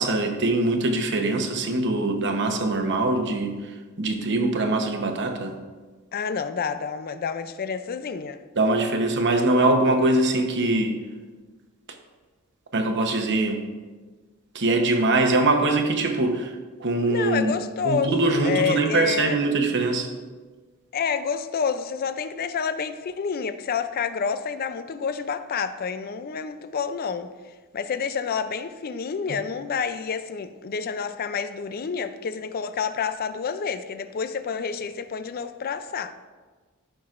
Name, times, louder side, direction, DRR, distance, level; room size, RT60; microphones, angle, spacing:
voice 1, 0.0-3.5 4.0-5.5 8.6-11.0 12.7-13.6 14.5-16.5 16.8-17.5 17.8-20.1, right 2 dB, 55° right, 4 dB, 0.9 m, -22 dB
voice 2, 6.1-8.4 17.1-19.4 20.9-27.3 27.7-36.1, left 6 dB, 45° left, 11 dB, 0.4 m, -29 dB
13.5 x 5.9 x 2.5 m, 1.4 s
head